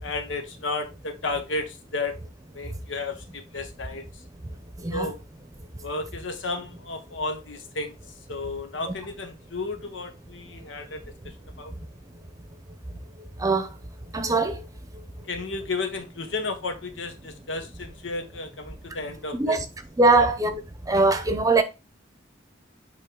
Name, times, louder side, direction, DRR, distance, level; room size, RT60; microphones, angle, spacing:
voice 1, 0.0-2.2 2.5-4.0 4.9-5.2 5.8-7.9 8.3-11.7 15.3-19.6 20.2-20.3, left 3 dB, 85° left, 1.1 m, -33 dB
voice 2, 14.1-14.5 19.4-19.6 20.0-20.6 20.9-21.6, right 3 dB, 20° right, 0.8 m, -20 dB
8.7 x 3.2 x 3.8 m
head